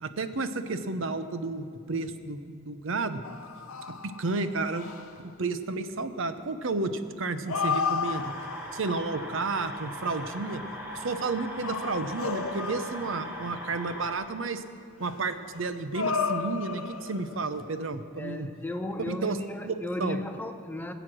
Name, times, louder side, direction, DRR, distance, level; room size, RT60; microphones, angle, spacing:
voice 1, 0.0-3.2 3.9-4.9 5.4-8.3 8.7-10.6 10.9-14.6 15.0-18.5 19.0-19.4 19.6-20.2, right 3 dB, 60° right, 10 dB, 0.7 m, -32 dB
sound 1, 3.2-5.2 7.2-8.9 9.8-10.4 11.4-13.3 15.0-17.5, left 5 dB, 75° left, 0.8 m, -33 dB
sound 2, 8.0-14.1, equal, 10° right, 1.9 m, -40 dB
voice 2, 18.2-20.9, left 1 dB, 10° left, 7 dB, 0.6 m, -35 dB
19.5 x 8.0 x 6.2 m, 2.4 s
head